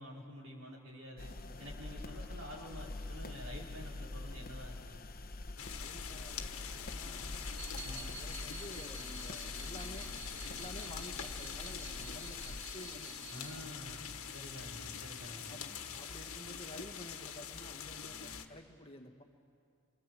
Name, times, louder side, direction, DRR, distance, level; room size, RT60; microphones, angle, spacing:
voice 1, 0.0-1.3 1.6-5.0 7.8-8.2 13.3-15.6, left 1 dB, 70° right, -4 dB, 4.7 m, -49 dB
sound 1, 1.2-12.6, left 2 dB, 45° left, 1.1 m, -45 dB
sound 2, 5.6-18.5, left 8 dB, 80° left, 1.5 m, -44 dB
voice 2, 5.7-7.4 7.8-10.1 10.4-13.7 15.5-15.6 15.9-19.2, left 1 dB, 25° left, 3 dB, 1.6 m, -51 dB
sound 3, 7.4-13.6, right 7 dB, 25° right, 1.8 m, -52 dB
25.5 x 25.5 x 7.7 m, 2.4 s
head